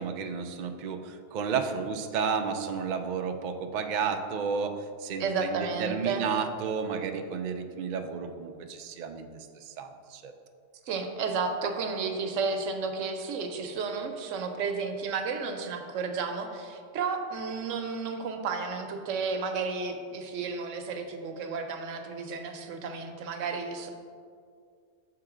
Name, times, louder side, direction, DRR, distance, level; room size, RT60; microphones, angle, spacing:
voice 1, 0.0-10.3, right 6 dB, 65° right, 6 dB, 0.4 m, -32 dB
voice 2, 5.2-6.3 10.9-23.9, right 4 dB, 90° right, 5 dB, 1.0 m, -32 dB
6.6 x 3.8 x 4.8 m, 2.2 s
omnidirectional pair, 1.3 m